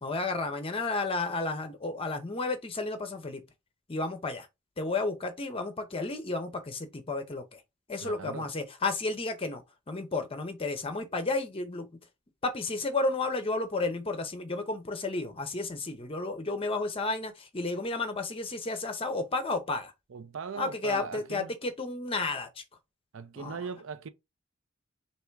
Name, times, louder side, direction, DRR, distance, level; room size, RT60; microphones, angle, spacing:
voice 1, 0.0-3.4 3.9-4.5 4.8-7.6 7.9-12.0 12.4-19.9 20.6-22.6 23.4-23.6, left 3 dB, 25° left, 0.6 m, -32 dB
voice 2, 8.0-8.5 20.1-21.5 23.1-24.1, right 5 dB, 70° right, 0.5 m, -39 dB
3.4 x 2.9 x 4.5 m
head